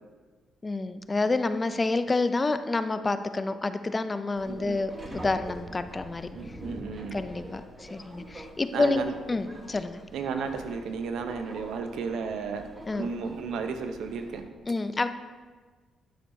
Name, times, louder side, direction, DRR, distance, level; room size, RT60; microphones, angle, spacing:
voice 1, 0.6-6.3 7.1-10.0 12.9-13.1 14.7-15.1, left 3 dB, 25° left, 11 dB, 0.4 m, -28 dB
Subway metro underground, 4.4-14.4, right 1 dB, 20° right, 1.1 m, -44 dB
voice 2, 4.5-4.8 6.4-7.2 8.7-9.2 10.1-12.6 13.0-14.4, right 5 dB, 80° right, 7 dB, 0.7 m, -33 dB
10.0 x 6.3 x 2.7 m, 1.4 s
cardioid pair, 90°, 0 cm